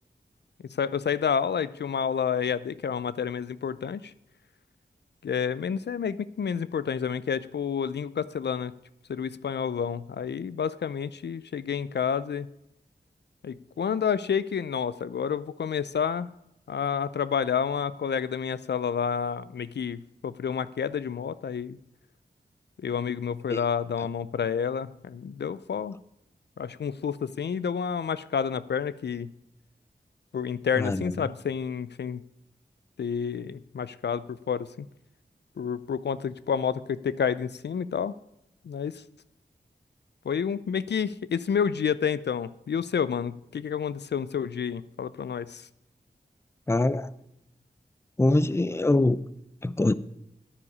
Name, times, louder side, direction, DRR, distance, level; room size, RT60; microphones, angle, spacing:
voice 1, 0.8-4.1 5.2-8.7 9.1-12.5 13.4-16.3 16.7-21.8 22.8-26.0 26.6-29.3 30.3-32.2 33.0-34.9 35.6-38.1 38.6-39.0 40.2-45.7, left 7 dB, 80° left, 17 dB, 0.5 m, -29 dB
voice 2, 30.8-31.2 46.7-47.1 48.2-49.2 49.6-49.9, left 2 dB, 15° left, 16 dB, 0.5 m, -23 dB
9.9 x 9.7 x 5.4 m, 0.82 s
wide cardioid pair, 55°, 18 cm